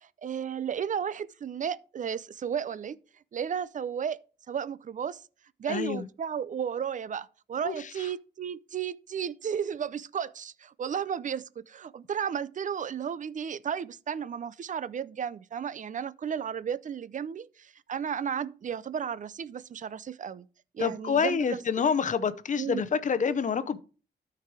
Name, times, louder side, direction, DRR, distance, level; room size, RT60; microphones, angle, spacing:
voice 1, 0.0-3.0 3.3-4.2 4.5-5.2 5.6-20.5 20.7-21.6 22.6-22.8, right 8 dB, 50° right, 0.5 m, -33 dB
voice 2, 5.7-6.0 7.6-7.7 20.8-23.8, left 6 dB, 45° left, 0.7 m, -27 dB
13.0 x 4.7 x 4.7 m
wide cardioid pair, 160°, 17 cm